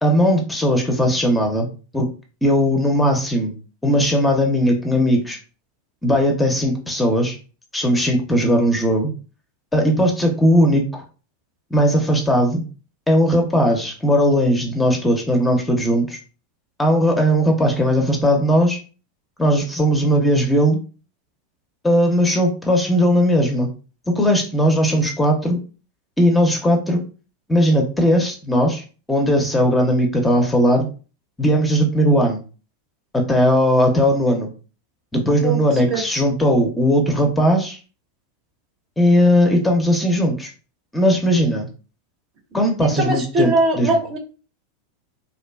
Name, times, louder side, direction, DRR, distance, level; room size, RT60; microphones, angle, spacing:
voice 1, 0.0-1.7 1.9-2.1 2.4-3.5 3.8-5.4 6.0-7.4 7.7-9.1 9.7-11.0 11.7-12.6 13.1-16.2 16.8-18.8 19.4-20.8 21.8-23.7 24.1-25.6 26.2-27.0 27.5-28.8 29.1-30.9 31.4-32.4 33.1-34.5 35.1-37.8 39.0-40.5 40.9-41.7 42.5-44.0, equal, 10° left, 2 dB, 0.5 m, -18 dB
voice 2, 42.8-44.2, right 2 dB, 45° right, 4 dB, 0.7 m, -20 dB
2.5 x 2.2 x 2.2 m, 0.35 s
hypercardioid pair, 100°, 0 cm